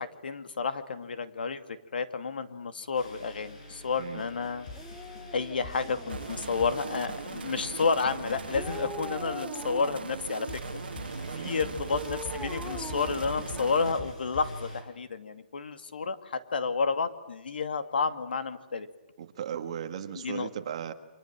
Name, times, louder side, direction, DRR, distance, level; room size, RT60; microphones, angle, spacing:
voice 1, 0.0-1.6 1.9-4.7 5.3-10.6 11.4-18.9 20.1-20.5, left 5 dB, 75° left, 9 dB, 2.3 m, -31 dB
sound 1, 2.9-9.6 10.5-14.8, left 2 dB, 45° left, 7.7 m, -43 dB
Dog, 4.7-6.8 8.5-10.2 11.9-14.0 14.4-14.5, left 1 dB, ahead, 1.0 m, -43 dB
sound 2, 6.1-13.9, right 6 dB, 85° right, 1.5 m, -40 dB
voice 2, 11.2-11.6 19.2-20.9, right 9 dB, 35° right, 8 dB, 1.7 m, -37 dB
29.5 x 25.5 x 7.6 m, 1.0 s
hypercardioid pair, 175°, 5 cm